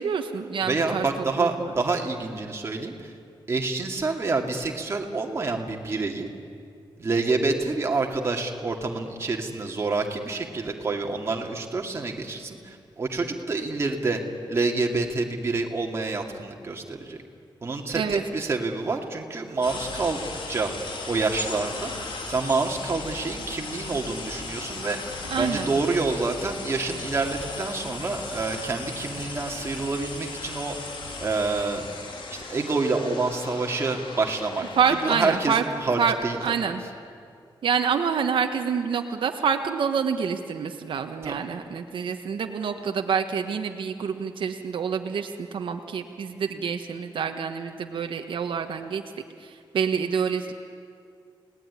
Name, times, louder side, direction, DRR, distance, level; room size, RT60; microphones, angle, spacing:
voice 1, 0.0-1.0 1.4-1.5 17.9-18.2 25.3-25.7 34.8-35.6 36.0-36.1 36.4-36.8 37.6-49.0 49.4-50.5, right 6 dB, 75° right, 5 dB, 1.3 m, -27 dB
voice 2, 0.6-3.1 3.5-6.3 7.0-14.2 14.5-17.2 17.6-20.7 21.1-21.9 22.3-25.0 25.4-30.7 31.2-31.9 32.3-36.4 41.2-41.4, right 3 dB, 30° right, 1 dB, 2.4 m, -27 dB
sound 1, 19.6-35.5, left 3 dB, 80° left, 3.4 m, -37 dB
30.0 x 18.5 x 9.7 m, 2.4 s
wide cardioid pair, 160°, 9 cm